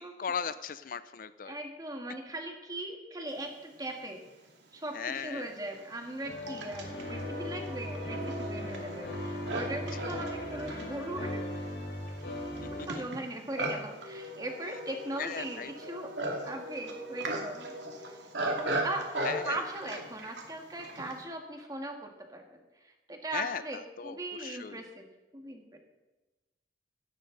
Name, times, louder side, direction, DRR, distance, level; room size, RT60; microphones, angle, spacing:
voice 1, 0.0-1.6 4.9-5.5 10.0-10.3 15.2-15.9 19.2-19.6 23.3-23.6 24.0-24.8, left 6 dB, 50° left, 13 dB, 0.5 m, -37 dB
voice 2, 1.5-4.2 4.7-11.4 12.7-16.1 16.4-17.7 18.0-18.2 18.5-19.1 19.5-25.8, right 1 dB, 20° right, 3 dB, 1.8 m, -39 dB
Livestock farm animals working animals, 4.5-4.6 5.3-21.2, right 1 dB, 85° right, 2.5 m, -38 dB
sound 1, 6.2-12.9, left 1 dB, 75° left, 4.0 m, -38 dB
17.0 x 13.0 x 4.0 m, 1.1 s
head